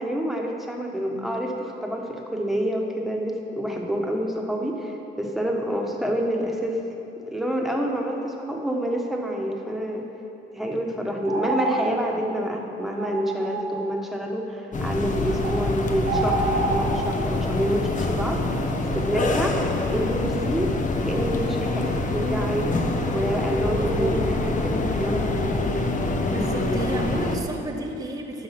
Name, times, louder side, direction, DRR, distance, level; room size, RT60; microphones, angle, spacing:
voice 1, 0.0-6.8 7.3-10.0 10.5-18.6 18.9-19.6 19.9-20.7 21.0-22.8 23.1-25.6, equal, ahead, 0 dB, 1.3 m, -27 dB
sound 1, 11.2-11.9 12.3-12.4 13.0-13.9 15.4-15.6 16.0-16.9, right 3 dB, 90° right, 1.6 m, -28 dB
sound 2, 14.7-27.4, left 2 dB, 40° left, 0.9 m, -25 dB
voice 2, 23.7-24.2 26.3-28.4, right 1 dB, 20° right, 1 dB, 0.8 m, -31 dB
12.0 x 4.8 x 5.9 m, 2.8 s
cardioid pair, 90°, 20 cm